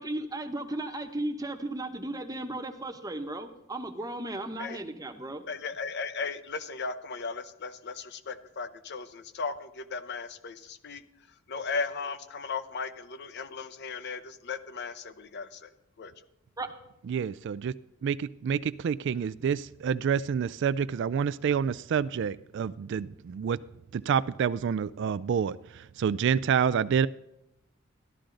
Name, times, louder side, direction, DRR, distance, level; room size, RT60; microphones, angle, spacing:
voice 1, 0.0-5.4 16.6-16.7, right 1 dB, 15° right, 7 dB, 0.9 m, -35 dB
voice 2, 5.5-11.0 11.5-15.7 16.0-16.1, left 4 dB, 55° left, 11 dB, 0.7 m, -36 dB
voice 3, 17.1-17.7 18.0-23.6 23.9-27.1, right 7 dB, 60° right, 16 dB, 0.3 m, -28 dB
13.5 x 11.5 x 3.8 m, 0.84 s
head